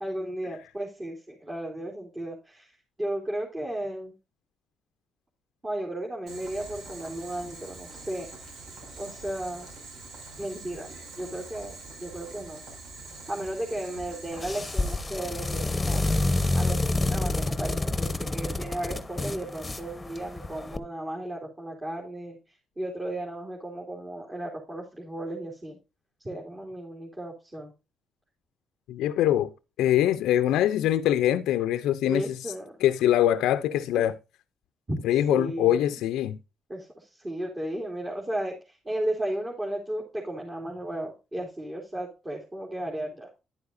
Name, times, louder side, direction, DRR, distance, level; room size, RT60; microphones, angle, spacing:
voice 1, 0.0-4.1 5.6-8.5 9.0-9.7 10.4-10.9 11.2-12.6 13.1-16.0 16.5-22.4 22.8-25.8 26.2-27.7 32.0-32.8 34.0-34.1 34.9-35.0 35.3-35.8 36.7-43.3, right 1 dB, 25° right, 3.2 m, -34 dB
Boiling, 6.3-14.9, right 3 dB, 80° right, 6.2 m, -44 dB
sound 1, 14.3-20.8, left 2 dB, 15° left, 1.1 m, -28 dB
voice 2, 28.9-29.5 29.8-32.4 32.8-34.1 35.0-36.4, left 12 dB, 90° left, 0.5 m, -23 dB
11.0 x 9.7 x 2.6 m
cardioid pair, 90°, 0 cm